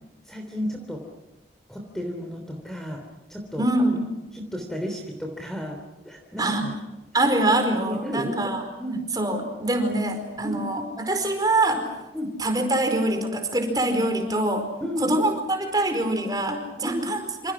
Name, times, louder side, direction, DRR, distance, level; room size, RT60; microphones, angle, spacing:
voice 1, 0.2-1.0 1.7-3.0 3.3-3.6 4.3-5.8 6.0-6.7 7.8-8.3 8.8-9.0 10.4-10.6 12.1-12.3 14.8-15.1 16.8-17.1, equal, ahead, 2 dB, 3.2 m, -32 dB
voice 2, 3.6-4.0 6.4-6.7 7.1-8.6 9.2-11.9 12.4-14.7 15.0-17.5, right 1 dB, 20° right, 5 dB, 4.7 m, -24 dB
27.5 x 27.0 x 6.2 m, 1.0 s
head